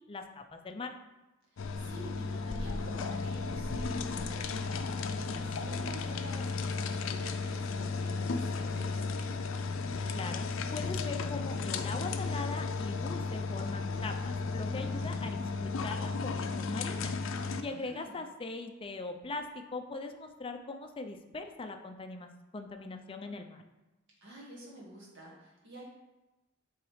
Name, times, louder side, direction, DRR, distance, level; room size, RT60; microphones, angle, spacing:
voice 1, 0.1-1.0 10.1-10.5 10.7-15.3 15.6-17.1 17.6-22.3 22.5-23.6, left 3 dB, 25° left, 5 dB, 0.5 m, -41 dB
voice 2, 1.5-9.4 14.7-15.2 17.6-18.2 24.2-25.8, right 1 dB, 65° right, -4 dB, 1.8 m, -49 dB
sound 1, 1.6-17.6, left 4 dB, 90° left, 0.5 m, -34 dB
7.8 x 3.9 x 3.2 m, 1.0 s
head